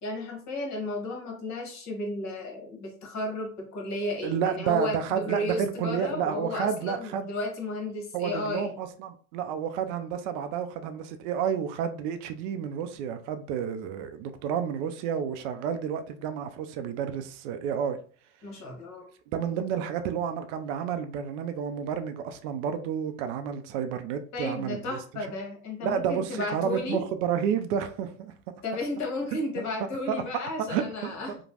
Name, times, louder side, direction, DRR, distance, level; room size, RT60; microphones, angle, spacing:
voice 1, 0.0-8.7 18.4-19.1 24.3-27.0 28.6-31.4, left 2 dB, 45° left, 1.2 m, -33 dB
voice 2, 4.2-7.3 8.1-18.0 19.3-25.0 25.8-28.3 30.1-30.2 30.7-31.4, right 8 dB, 65° right, 0.5 m, -30 dB
3.0 x 2.1 x 2.8 m
hypercardioid pair, 75°, 39 cm